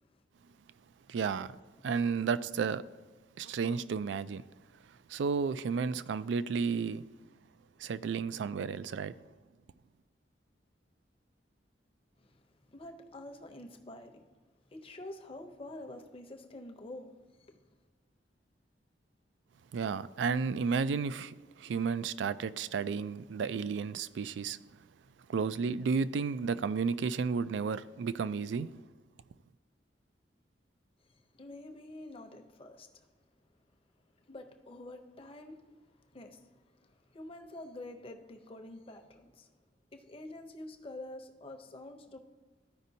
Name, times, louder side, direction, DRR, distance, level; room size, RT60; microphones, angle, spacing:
voice 1, 1.1-1.6 1.8-2.8 3.4-4.4 5.1-7.0 7.8-9.1 19.7-24.6 25.3-28.7, right 5 dB, 80° right, 0.3 m, -32 dB
voice 2, 12.2-14.3 14.7-17.1 17.4-17.7 31.1-33.1 34.3-35.8 36.1-39.5 39.9-42.2, left 1 dB, 30° left, 0.7 m, -48 dB
13.0 x 5.1 x 2.7 m
head